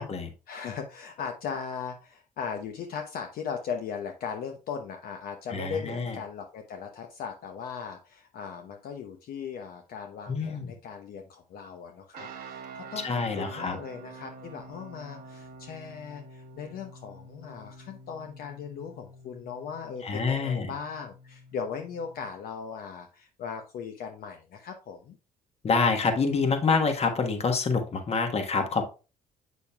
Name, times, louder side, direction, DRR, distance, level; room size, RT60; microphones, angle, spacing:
voice 1, 0.5-25.2, left 6 dB, 65° left, 5 dB, 0.8 m, -38 dB
voice 2, 5.5-6.2 10.3-10.7 13.0-13.8 20.0-20.7 25.6-28.8, left 4 dB, 40° left, 6 dB, 1.3 m, -27 dB
sound 1, 12.1-22.3, right 3 dB, 70° right, 1.3 m, -47 dB
7.2 x 6.2 x 2.3 m, 0.32 s
cardioid pair, 90°, 16 cm